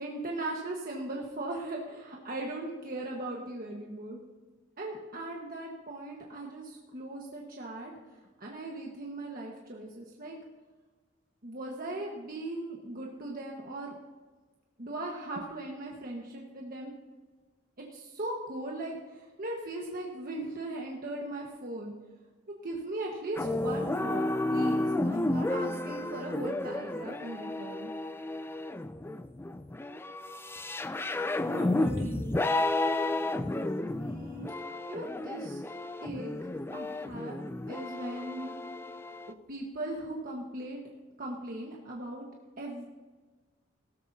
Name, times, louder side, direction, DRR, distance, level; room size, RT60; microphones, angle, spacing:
voice 1, 0.0-4.2 4.8-7.9 8.4-10.3 11.4-13.9 14.8-16.9 17.8-22.0 22.6-27.9 34.0-35.6 36.0-37.4 37.7-38.5 39.2-40.8 41.2-42.3 42.6-42.8, right 2 dB, 45° right, -2 dB, 1.4 m, -39 dB
sound 1, 23.4-39.3, left 2 dB, 10° left, 0.4 m, -32 dB
voice 2, 30.5-32.6 33.6-33.7, right 2 dB, 75° right, -1 dB, 2.8 m, -43 dB
17.0 x 13.5 x 2.8 m, 1.3 s
head